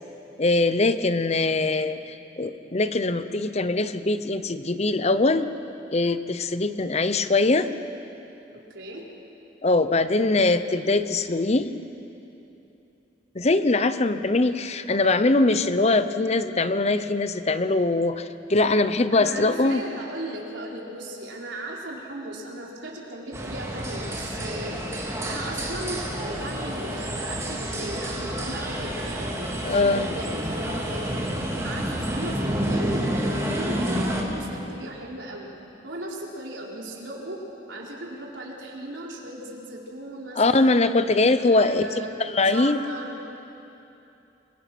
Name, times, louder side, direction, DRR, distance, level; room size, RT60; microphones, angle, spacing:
voice 1, 0.4-5.5 5.9-7.7 9.6-11.7 13.3-19.8 29.6-30.2 40.4-42.8, left 2 dB, 35° left, 11 dB, 0.8 m, -22 dB
voice 2, 8.7-9.1 19.1-31.3 31.6-35.5 35.8-40.9 41.5-43.2, right 1 dB, 80° right, -3 dB, 4.2 m, -37 dB
sound 1, 23.3-34.2, right 1 dB, 15° right, 2.7 m, -29 dB
28.0 x 22.0 x 6.2 m, 2.9 s
head